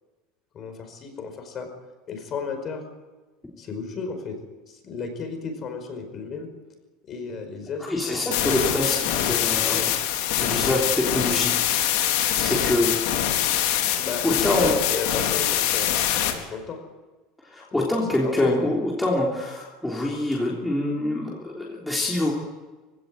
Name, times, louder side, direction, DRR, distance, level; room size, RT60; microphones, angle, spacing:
voice 1, 0.5-1.7 2.1-2.8 3.6-4.4 4.7-6.5 7.0-8.8 9.2-9.9 14.0-16.0 16.3-16.8 17.7-18.5, left 5 dB, 30° left, 6 dB, 5.0 m, -34 dB
voice 2, 7.8-9.9 10.4-11.6 12.4-13.0 14.2-14.8 17.5-22.3, left 1 dB, 5° left, -4 dB, 3.5 m, -25 dB
sound 1, 8.3-16.3, left 11 dB, 65° left, 4.1 m, -24 dB
25.0 x 16.5 x 9.2 m, 1.2 s
cardioid pair, 170°, 0 cm